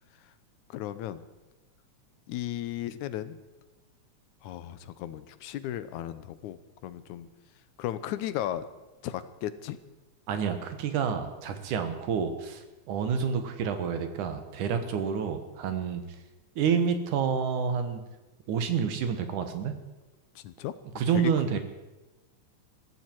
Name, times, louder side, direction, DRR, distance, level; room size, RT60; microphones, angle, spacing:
voice 1, 0.7-1.3 2.3-3.4 4.4-7.3 7.8-8.6 9.0-9.8 20.4-20.7 21.1-21.6, left 12 dB, 80° left, 13 dB, 2.2 m, -35 dB
voice 2, 10.3-16.0 16.6-18.0 18.5-19.7 21.0-21.6, right 7 dB, 90° right, 8 dB, 2.9 m, -28 dB
21.0 x 15.0 x 4.6 m, 1.1 s
omnidirectional pair, 3.4 m